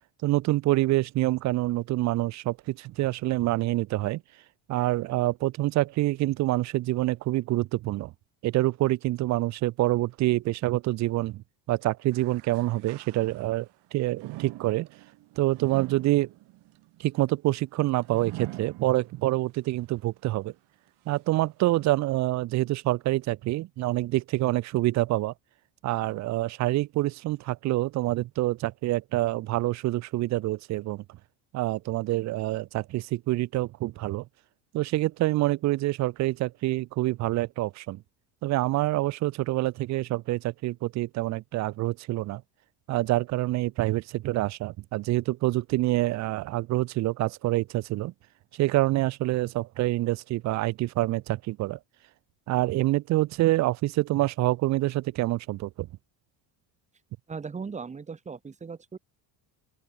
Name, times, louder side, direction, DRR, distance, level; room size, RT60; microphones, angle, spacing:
voice 1, 0.2-4.2 4.7-8.1 8.4-14.9 15.4-16.3 17.0-20.5 21.1-25.3 25.8-31.0 31.5-34.3 34.7-38.0 38.4-42.4 42.9-48.1 48.5-51.8 52.5-55.9, right 17 dB, 45° right, 0.4 m, -26 dB
sound 1, 12.1-13.7 14.2-19.4 19.9-20.0 20.9-21.0, right 20 dB, 75° right, 3.9 m, -43 dB
voice 2, 57.3-59.0, right 5 dB, 15° right, 0.9 m, -38 dB
open air
cardioid pair, 120°, 42 cm